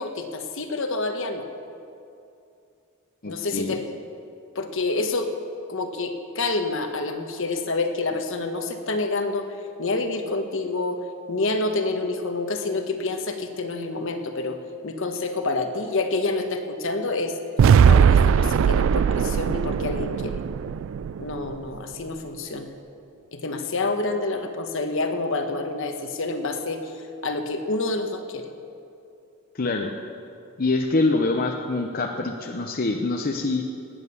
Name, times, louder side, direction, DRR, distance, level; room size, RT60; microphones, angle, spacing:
voice 1, 0.0-1.5 3.3-3.9 4.5-5.3 5.7-9.5 9.8-14.6 14.8-17.4 17.8-20.4 21.2-22.7 23.3-26.9 27.2-28.4, left 3 dB, 65° left, 6 dB, 1.2 m, -28 dB
voice 2, 3.2-3.8 29.5-29.9 30.6-33.6, left 3 dB, 45° left, 3 dB, 0.8 m, -25 dB
sound 1, 17.6-21.7, right 7 dB, 65° right, 0.3 m, -19 dB
19.0 x 9.1 x 6.9 m, 2.6 s
head